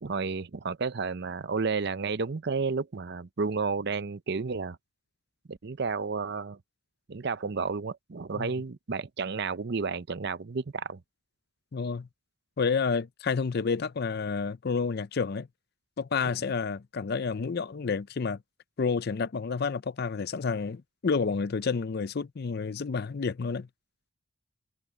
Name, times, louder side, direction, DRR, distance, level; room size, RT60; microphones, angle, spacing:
voice 1, 0.0-4.8 5.5-6.6 7.1-11.0 16.2-16.4, right 4 dB, 55° right, 0.6 m, -31 dB
voice 2, 11.7-12.1 12.6-15.5 16.0-18.4 18.8-23.7, left 5 dB, 50° left, 0.5 m, -30 dB
head